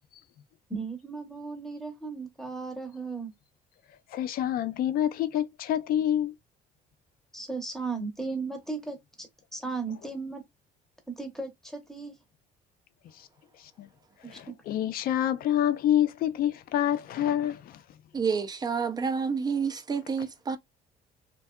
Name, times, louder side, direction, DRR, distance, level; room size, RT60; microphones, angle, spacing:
voice 1, 0.7-3.3 7.3-10.4 11.1-12.2 14.2-14.4, right 4 dB, ahead, 0.8 m, -36 dB
voice 2, 4.1-6.3 13.2-13.3 13.8-13.9 14.2-17.8, left 11 dB, 60° left, 0.4 m, -27 dB
voice 3, 18.1-20.6, right 5 dB, 25° right, 0.4 m, -29 dB
2.6 x 2.2 x 2.2 m
cardioid pair, 110°, 17 cm